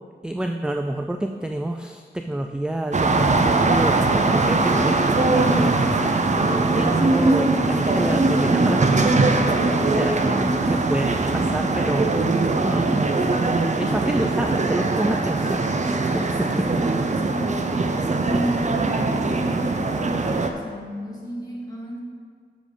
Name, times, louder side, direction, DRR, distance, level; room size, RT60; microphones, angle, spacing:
voice 1, 0.2-9.3 9.8-12.9 13.8-16.9, right 1 dB, 5° right, 5 dB, 0.3 m, -28 dB
sound 1, 2.9-20.5, right 3 dB, 40° right, 0.6 m, -21 dB
voice 2, 10.2-11.0 16.4-17.8 18.2-22.0, equal, 20° left, -5 dB, 2.1 m, -32 dB
7.4 x 6.3 x 5.0 m, 2.1 s
wide cardioid pair, 90°, 18 cm